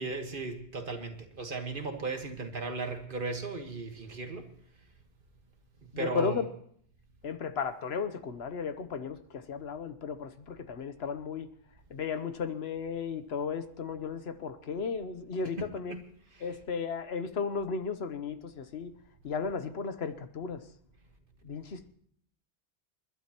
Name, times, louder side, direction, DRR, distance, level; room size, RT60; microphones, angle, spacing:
voice 1, 0.0-4.5 6.0-6.4 15.9-16.0 16.3-16.4, right 3 dB, 50° right, 5 dB, 1.7 m, -36 dB
voice 2, 5.9-6.5 7.2-11.5 11.9-16.0 16.4-18.9 19.2-20.6 21.4-21.9, left 5 dB, 70° left, 10 dB, 1.1 m, -35 dB
28.5 x 11.5 x 3.0 m, 0.65 s
omnidirectional pair, 1.1 m